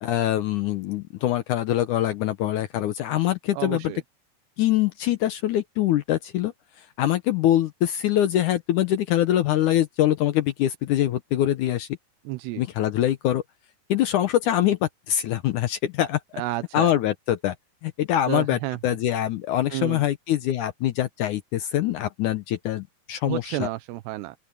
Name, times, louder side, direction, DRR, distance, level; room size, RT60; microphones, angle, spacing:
voice 1, 0.0-3.9 4.6-6.5 6.8-11.9 12.6-13.4 13.9-16.4 16.7-17.6 17.8-23.7, left 12 dB, 80° left, 1.8 m, -24 dB
voice 2, 3.5-4.0 12.3-12.6 16.3-16.9 18.3-18.8 19.7-20.0 23.2-24.4, right 17 dB, 85° right, 2.9 m, -31 dB
open air
omnidirectional pair, 4.7 m